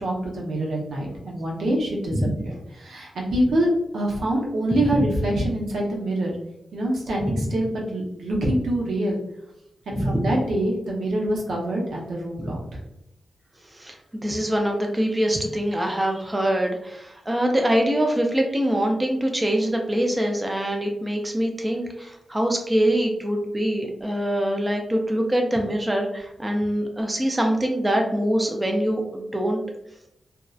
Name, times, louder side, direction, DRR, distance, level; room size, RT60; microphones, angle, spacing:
voice 1, 0.0-6.3 6.7-9.2 9.9-12.8, right 1 dB, 90° right, -2 dB, 0.6 m, -25 dB
voice 2, 13.7-29.6, right 1 dB, 15° right, 2 dB, 0.4 m, -24 dB
2.6 x 2.0 x 2.3 m, 0.81 s
wide cardioid pair, 100°, 0 cm